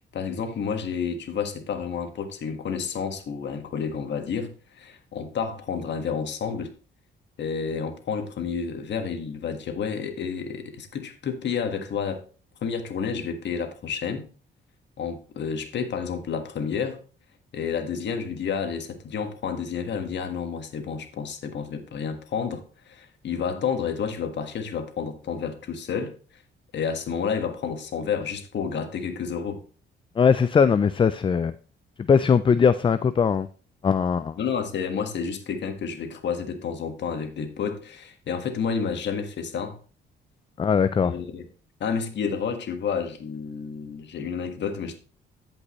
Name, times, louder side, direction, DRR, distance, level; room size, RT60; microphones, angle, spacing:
voice 1, 0.0-6.7 7.4-12.2 12.6-14.3 15.0-17.0 17.5-26.1 26.7-29.6 34.4-39.8 41.0-41.4 41.8-45.0, left 6 dB, 65° left, 1.6 m, -30 dB
voice 2, 30.2-31.5 32.0-33.5 33.8-34.4 40.6-41.1, left 6 dB, 25° left, 0.4 m, -20 dB
14.5 x 5.4 x 3.1 m
cardioid pair, 90°, 20 cm